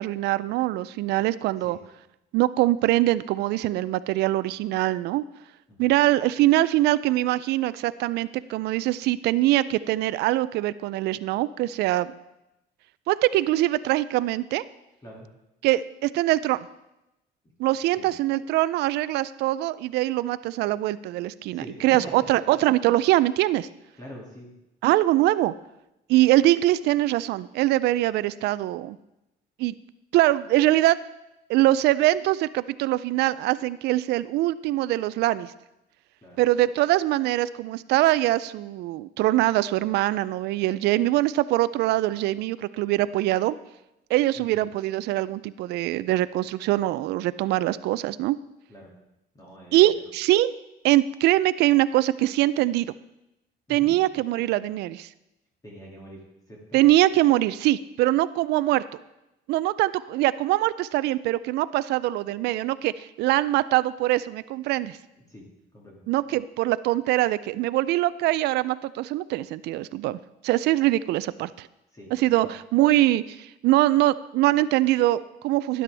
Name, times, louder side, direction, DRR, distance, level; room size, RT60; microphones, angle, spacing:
voice 1, 0.0-1.8 2.3-5.2 5.8-12.1 13.1-14.6 15.6-16.7 17.6-23.7 24.8-25.5 26.1-29.0 29.6-29.7 30.1-31.0 31.5-35.5 36.4-43.5 44.1-48.4 49.7-50.5 50.8-52.9 53.7-55.1 56.7-58.8 59.5-65.0 66.1-71.7 72.1-75.8, right 16 dB, 80° right, 16 dB, 0.4 m, -23 dB
voice 2, 21.5-22.6 24.0-24.5 36.2-36.4 44.4-44.6 48.7-48.9 49.3-50.0 53.7-53.9 55.6-56.8 65.3-65.5 65.7-66.0 71.9-72.5, equal, 20° left, -3 dB, 2.2 m, -45 dB
12.5 x 10.0 x 3.4 m, 0.91 s
cardioid pair, 110°, 17 cm